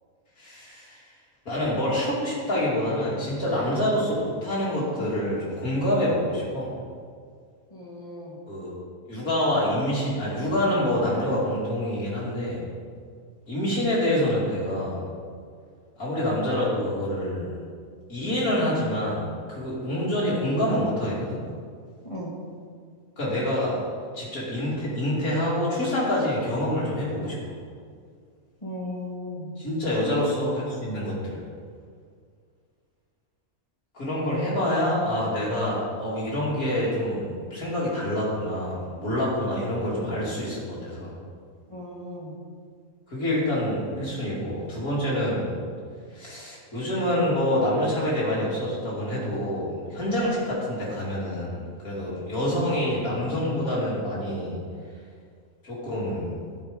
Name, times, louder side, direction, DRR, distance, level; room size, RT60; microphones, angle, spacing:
voice 1, 0.4-1.1 1.4-6.7 8.5-8.7 9.1-12.7 13.5-15.0 16.0-17.5 18.1-21.4 23.2-23.8 24.1-27.5 29.6-31.4 33.9-41.1 43.1-45.5 46.1-54.6 55.6-56.4, left 1 dB, 80° left, -8 dB, 3.5 m, -26 dB
voice 2, 7.7-8.4 22.0-22.3 28.6-29.5 30.1-30.5 41.7-42.3, left 1 dB, 20° left, -4 dB, 2.3 m, -36 dB
12.5 x 7.3 x 5.3 m, 2.1 s
omnidirectional pair, 1.5 m